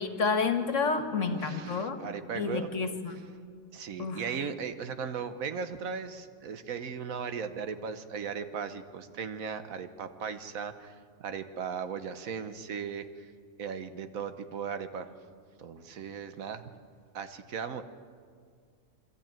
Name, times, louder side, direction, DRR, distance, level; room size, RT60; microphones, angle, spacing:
voice 1, 0.0-2.0 2.3-3.2 4.0-4.2, left 4 dB, 60° left, 6 dB, 1.8 m, -29 dB
voice 2, 1.2-2.7 3.7-13.3 13.6-15.1 15.6-16.6 17.1-17.8, right 6 dB, 75° right, 10 dB, 1.4 m, -37 dB
24.5 x 13.5 x 8.8 m, 2.1 s
omnidirectional pair, 1.5 m